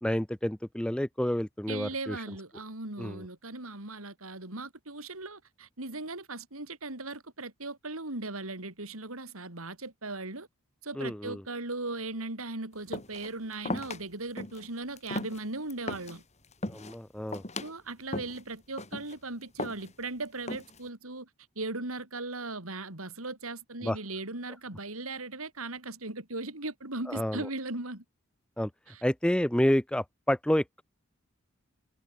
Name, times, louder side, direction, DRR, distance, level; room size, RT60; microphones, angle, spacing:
voice 1, 0.0-2.2 3.0-3.2 11.0-11.4 16.7-17.4 23.8-24.0 27.1-27.5 28.6-28.7 29.0-30.8, equal, 5° left, 0.5 m, -29 dB
voice 2, 1.7-10.5 10.8-16.2 17.6-21.3 21.5-28.0 28.9-29.0, right 2 dB, 90° right, 4.6 m, -38 dB
sound 1, 12.9-13.3 13.7-14.0 14.4-14.7 15.0-16.2 16.5-17.0 17.3-17.7 18.1-18.4 18.8-19.2 19.6-20.1 20.5-20.9, left 2 dB, 35° left, 3.3 m, -36 dB
head